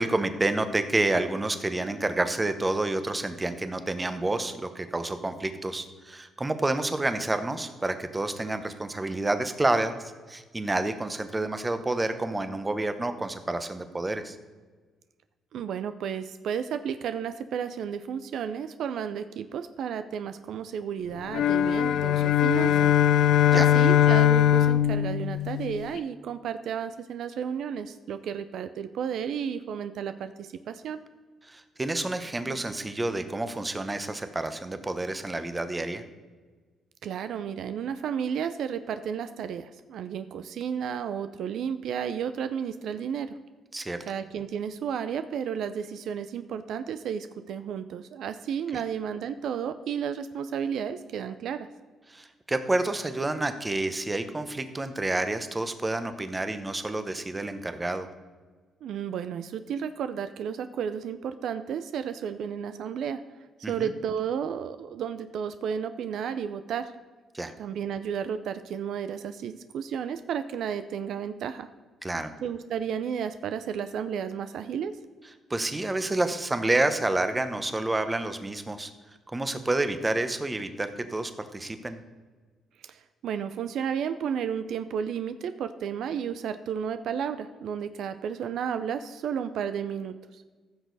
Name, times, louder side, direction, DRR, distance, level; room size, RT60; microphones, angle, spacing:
voice 1, 0.0-14.4 23.5-23.7 31.4-36.0 43.7-44.0 48.7-48.8 52.1-58.1 63.6-63.9 67.3-67.5 72.0-72.3 75.5-78.9 79.3-82.0, right 2 dB, 20° right, 9 dB, 0.9 m, -29 dB
voice 2, 15.5-22.9 23.5-31.0 37.0-43.4 44.1-51.7 58.8-63.2 63.6-66.9 67.6-71.7 72.4-74.9 82.9-90.1, right 8 dB, 75° right, 11 dB, 0.5 m, -32 dB
sound 1, 21.3-26.0, left 10 dB, 75° left, 0.4 m, -21 dB
15.0 x 6.4 x 4.0 m, 1.4 s
cardioid pair, 90°, 0 cm